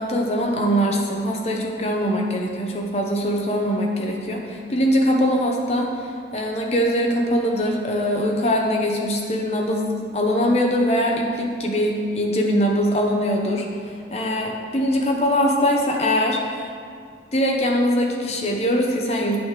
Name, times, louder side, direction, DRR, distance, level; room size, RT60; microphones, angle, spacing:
voice 1, 0.0-16.7 17.3-19.4, equal, 35° left, 0 dB, 0.8 m, -22 dB
10.0 x 6.1 x 3.3 m, 2.2 s
head